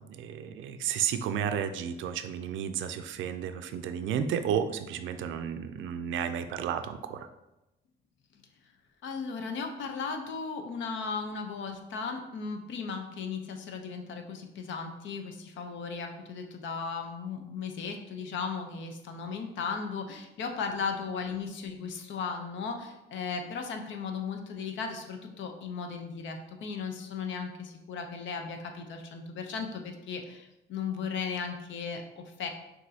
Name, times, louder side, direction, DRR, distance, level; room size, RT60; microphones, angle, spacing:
voice 1, 0.0-7.3, right 8 dB, 75° right, 9 dB, 0.4 m, -32 dB
voice 2, 9.0-32.5, left 5 dB, 70° left, 5 dB, 0.7 m, -36 dB
6.0 x 2.7 x 2.7 m, 0.94 s
cardioid pair, 90°, 20 cm